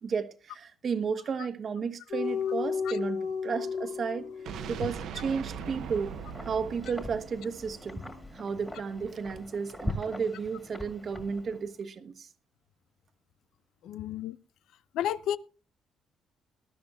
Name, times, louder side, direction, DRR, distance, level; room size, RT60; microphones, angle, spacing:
voice 1, 0.0-4.3 4.7-6.2 6.4-8.0 8.3-12.3, right 5 dB, 40° right, 1.1 m, -33 dB
sound 1, 2.1-8.9 9.2-9.4, left 6 dB, 60° left, 1.4 m, -36 dB
sound 2, 4.4-8.4, right 7 dB, 75° right, 0.9 m, -41 dB
Wind, 5.3-11.8, left 1 dB, 10° left, 2.0 m, -42 dB
voice 2, 13.8-14.4 14.9-15.4, left 11 dB, 85° left, 0.5 m, -31 dB
20.0 x 12.0 x 2.4 m
cardioid pair, 150°, 0 cm